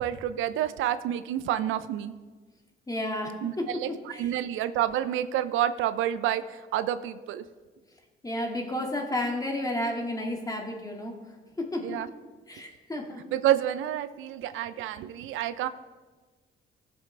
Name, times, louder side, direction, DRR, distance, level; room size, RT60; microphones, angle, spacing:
voice 1, 0.0-2.1 3.4-3.9 4.2-6.4 6.7-7.4 11.8-12.1 13.3-15.7, right 11 dB, 85° right, 12 dB, 0.5 m, -28 dB
voice 2, 2.9-4.4 8.2-12.1 12.5-13.2, left 1 dB, 20° left, 1 dB, 2.0 m, -32 dB
17.0 x 7.2 x 3.3 m, 1.3 s
cardioid pair, 90°, 20 cm